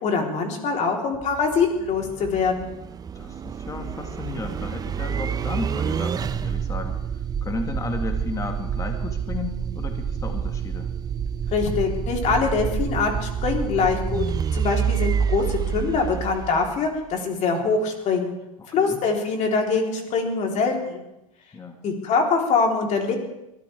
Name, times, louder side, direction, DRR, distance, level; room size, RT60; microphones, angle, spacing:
voice 1, 0.0-2.7 11.5-14.3 14.5-18.3 18.7-21.0 21.8-23.2, left 4 dB, 40° left, 1 dB, 3.6 m, -23 dB
sound 1, 1.1-17.1, right 7 dB, 20° right, 0.6 m, -28 dB
voice 2, 3.2-10.9 18.6-19.1 21.5-21.8, left 3 dB, 20° left, 4 dB, 1.8 m, -34 dB
23.0 x 13.0 x 3.5 m, 0.88 s
hypercardioid pair, 105°, 18 cm